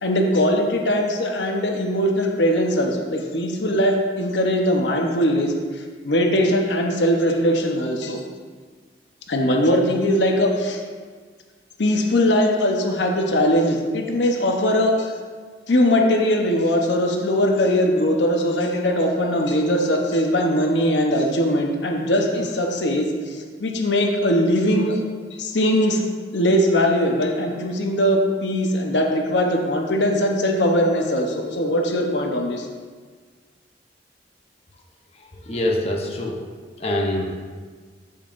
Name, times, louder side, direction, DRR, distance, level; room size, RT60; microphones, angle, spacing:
voice 1, 0.0-8.2 9.3-10.8 11.8-15.1 15.7-25.0 25.4-26.0 26.3-32.7, equal, 85° left, 2 dB, 0.9 m, -20 dB
voice 2, 35.5-36.4 36.8-37.4, left 1 dB, 35° left, -1 dB, 0.9 m, -24 dB
13.5 x 5.6 x 2.6 m, 1.5 s
head